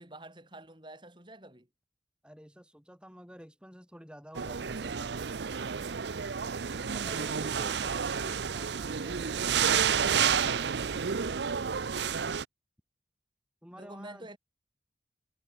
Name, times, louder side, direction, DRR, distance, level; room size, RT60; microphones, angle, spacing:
voice 1, 0.0-1.7 7.0-8.1 13.8-14.4, right 1 dB, 25° right, 4.8 m, -48 dB
voice 2, 2.2-5.5 6.6-11.0 13.6-14.3, equal, 5° right, 4.7 m, -50 dB
sound 1, 4.3-12.4, right 7 dB, 70° right, 0.6 m, -30 dB
head